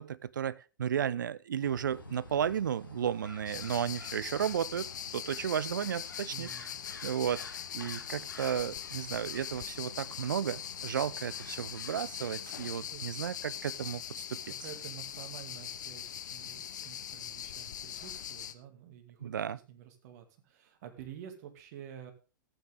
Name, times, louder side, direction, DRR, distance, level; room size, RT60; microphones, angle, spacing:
voice 1, 0.0-6.5 7.0-14.4 19.2-19.6, right 9 dB, 70° right, 20 dB, 0.6 m, -34 dB
sound 1, 1.6-12.6, left 2 dB, 85° left, 2.1 m, -51 dB
sound 2, 3.5-18.5, left 10 dB, 65° left, 1.0 m, -41 dB
voice 2, 6.3-6.8 12.9-13.1 14.4-22.1, right 10 dB, 50° right, 5 dB, 2.4 m, -49 dB
14.5 x 9.1 x 3.6 m, 0.32 s
figure-of-eight pair, 105°, 11 cm